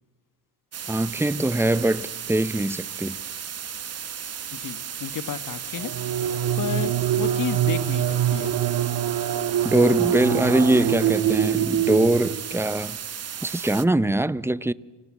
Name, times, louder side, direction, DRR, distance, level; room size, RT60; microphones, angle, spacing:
sound 1, 0.7-13.9, right 8 dB, 40° right, 1.3 m, -35 dB
voice 1, 0.9-3.2 9.6-13.0 13.4-14.7, right 1 dB, 5° right, 0.8 m, -22 dB
voice 2, 4.5-5.9 6.6-8.0 8.3-8.5, left 8 dB, 55° left, 1.8 m, -31 dB
sound 2, 5.8-12.7, right 10 dB, 65° right, 2.0 m, -24 dB
29.5 x 26.5 x 7.6 m
cardioid pair, 100°, 40 cm